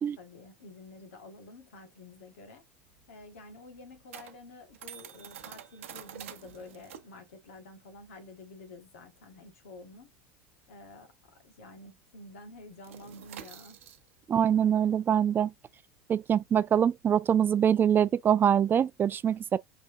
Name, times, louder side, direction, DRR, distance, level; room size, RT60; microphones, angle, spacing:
voice 1, 0.2-2.6 3.1-10.1 10.7-13.8, left 2 dB, 85° left, 1.4 m, -49 dB
sound 1, 2.6-11.6 11.8-12.1 12.4-18.1, right 10 dB, 85° right, 0.8 m, -49 dB
voice 2, 14.3-15.5 16.1-19.6, right 9 dB, 30° right, 0.4 m, -24 dB
5.0 x 3.2 x 2.6 m
hypercardioid pair, 85°, 7 cm